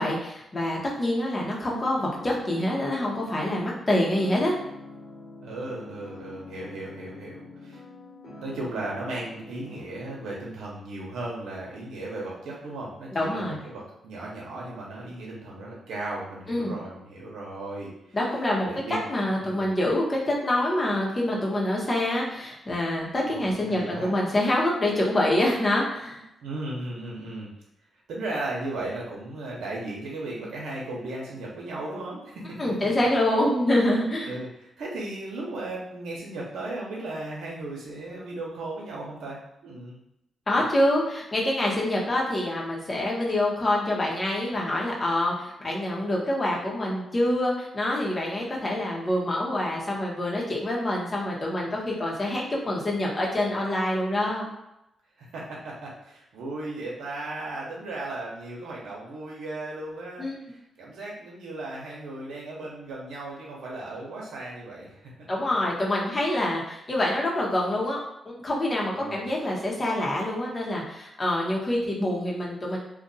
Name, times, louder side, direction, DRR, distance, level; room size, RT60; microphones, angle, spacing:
voice 1, 0.0-4.6 13.1-13.6 16.5-16.7 18.1-26.2 32.6-34.3 40.5-54.5 60.2-60.4 65.3-68.0 68.2-72.8, left 1 dB, 30° left, -3 dB, 1.1 m, -26 dB
sound 1, 1.9-10.3, left 3 dB, 65° left, 1.3 m, -44 dB
voice 2, 5.4-7.8 8.4-18.2 18.6-19.0 19.4-19.7 23.3-24.1 26.4-27.5 28.1-32.6 34.3-40.0 40.5-40.6 55.2-65.1 68.9-69.3, right 2 dB, 85° right, -4 dB, 0.9 m, -36 dB
2.5 x 2.5 x 4.0 m, 0.85 s
cardioid pair, 80°, 0 cm